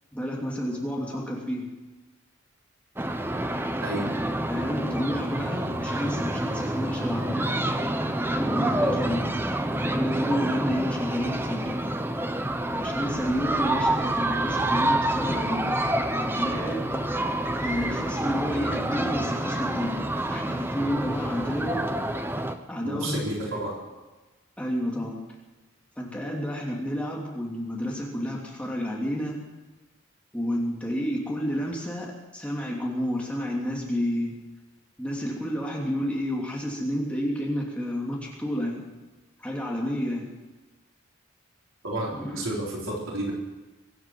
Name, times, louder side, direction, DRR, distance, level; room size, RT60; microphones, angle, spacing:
voice 1, 0.1-1.7 4.5-7.5 8.3-11.7 12.7-15.8 16.1-16.9 17.6-21.8 22.7-23.2 24.6-25.2 26.0-29.4 30.3-34.3 35.0-38.8 39.4-40.3 42.1-42.4, equal, 5° left, -3 dB, 2.8 m, -30 dB
sound 1, 3.0-22.5, right 1 dB, 10° right, 0.9 m, -28 dB
voice 2, 22.8-23.8 41.8-42.1 42.3-43.3, right 1 dB, 75° right, -4 dB, 4.3 m, -30 dB
24.0 x 9.4 x 6.2 m, 1.2 s
head